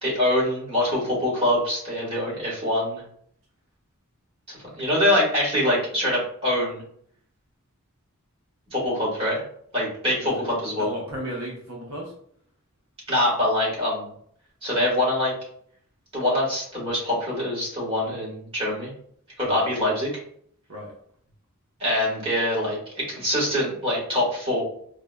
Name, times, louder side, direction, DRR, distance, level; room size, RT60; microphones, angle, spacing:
voice 1, 0.0-3.0 4.5-6.8 8.7-9.4 9.7-10.9 13.1-14.1 14.6-15.3 16.1-18.9 19.4-20.1 21.8-24.6, left 1 dB, 25° right, -6 dB, 1.4 m, -24 dB
voice 2, 10.2-10.5 10.8-12.1 19.4-19.6 20.7-20.9, right 1 dB, 65° right, -2 dB, 0.7 m, -35 dB
4.7 x 2.1 x 2.2 m, 0.63 s
head